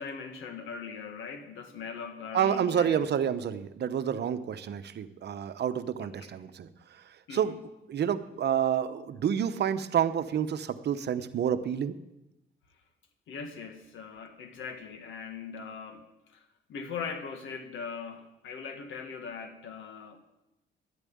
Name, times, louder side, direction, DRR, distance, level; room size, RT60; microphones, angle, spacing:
voice 1, 0.0-3.1 6.0-6.3 7.3-7.6 13.3-20.2, left 5 dB, 75° left, 7 dB, 1.8 m, -40 dB
voice 2, 2.3-7.5 7.9-11.9, right 8 dB, 60° right, 11 dB, 0.9 m, -29 dB
11.0 x 8.9 x 8.7 m, 0.93 s
cardioid pair, 90°, 20 cm